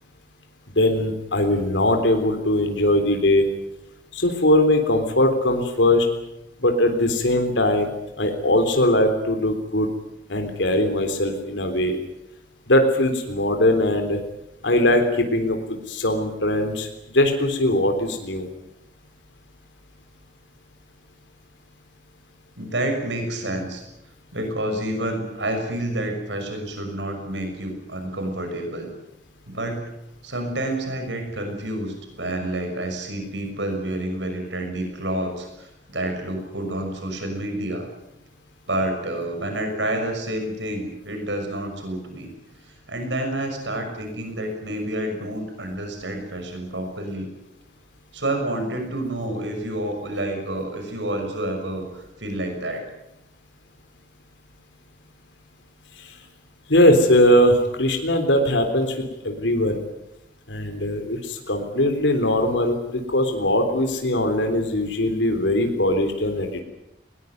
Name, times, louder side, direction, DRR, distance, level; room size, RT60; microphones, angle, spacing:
voice 1, 0.8-3.4 4.1-6.1 6.6-7.9 8.2-9.9 10.3-12.0 12.7-14.2 14.6-15.6 15.9-16.9 17.1-18.5 56.7-59.0 59.2-59.8 60.5-66.6, left 1 dB, 85° left, 5 dB, 3.6 m, -20 dB
voice 2, 22.6-23.8 24.3-28.9 29.5-29.9 30.2-37.9 38.7-42.3 42.9-47.3 48.1-52.8, right 1 dB, 85° right, 4 dB, 6.3 m, -29 dB
21.0 x 20.5 x 9.4 m, 0.89 s
head